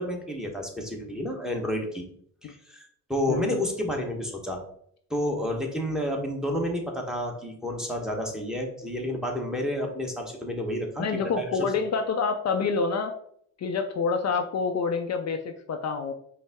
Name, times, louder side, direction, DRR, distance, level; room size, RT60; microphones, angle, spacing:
voice 1, 0.0-2.0 2.4-2.8 3.1-4.6 5.1-11.0 11.4-11.7, left 1 dB, ahead, 0 dB, 1.0 m, -30 dB
voice 2, 3.3-3.6 11.0-13.1 13.6-16.1, left 5 dB, 50° left, 5 dB, 0.5 m, -27 dB
5.3 x 2.1 x 3.5 m, 0.66 s
cardioid pair, 80°, 34 cm